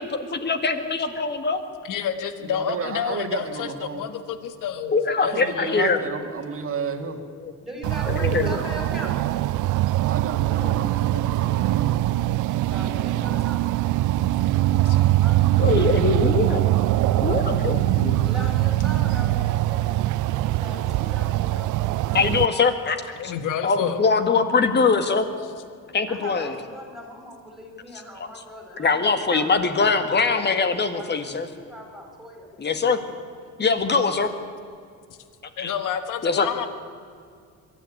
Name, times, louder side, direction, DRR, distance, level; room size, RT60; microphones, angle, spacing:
voice 1, 0.0-1.6 4.9-6.0 7.2-7.5 8.1-8.6 10.6-10.7 12.1-12.4 15.6-16.6 17.2-18.2 22.1-23.0 23.2-23.3 23.6-25.3 25.9-26.5 28.8-31.5 32.6-33.0 33.6-34.3 35.6-35.7 36.2-36.7, left 4 dB, 35° left, 9 dB, 1.9 m, -22 dB
voice 2, 1.8-5.0 5.2-5.8 14.8-15.0 23.2-24.0 35.6-36.7, left 8 dB, 75° left, 10 dB, 1.5 m, -29 dB
voice 3, 2.4-4.0 5.2-7.2 10.1-12.1 12.7-13.4 14.5-14.7, right 6 dB, 45° right, 6 dB, 1.9 m, -33 dB
voice 4, 7.6-9.2 12.7-13.8 14.5-16.1 16.7-17.2 18.0-20.0 20.3-22.3 26.1-31.4 31.7-32.8 36.3-36.7, equal, ahead, 1 dB, 5.2 m, -40 dB
sound 1, 7.8-22.5, right 15 dB, 70° right, 0.5 m, -22 dB
22.5 x 13.0 x 9.8 m, 2.3 s
cardioid pair, 125°, 31 cm